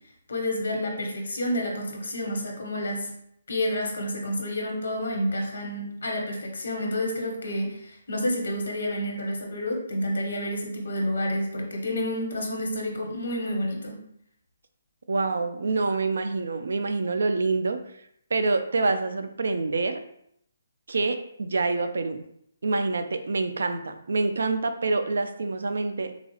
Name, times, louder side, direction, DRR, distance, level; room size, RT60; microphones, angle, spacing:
voice 1, 0.3-3.1 3.5-14.0, left 1 dB, 60° left, 0 dB, 1.1 m, -29 dB
voice 2, 15.1-17.8 18.3-20.0 20.9-22.2 22.6-26.1, right 3 dB, 70° right, 8 dB, 0.4 m, -26 dB
3.9 x 2.3 x 2.9 m, 0.73 s
hypercardioid pair, 180°, 0 cm